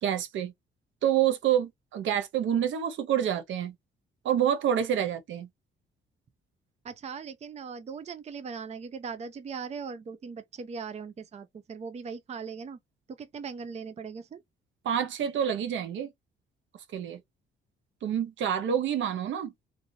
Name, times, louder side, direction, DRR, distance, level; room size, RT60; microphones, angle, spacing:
voice 1, 0.0-0.5 1.0-3.7 4.2-5.5 14.8-16.1 16.9-17.2 18.0-19.5, right 9 dB, 70° right, 0.8 m, -27 dB
voice 2, 6.8-12.8 13.2-14.4, right 5 dB, 35° right, 0.5 m, -39 dB
2.7 x 2.6 x 2.7 m
cardioid pair, 90°, 20 cm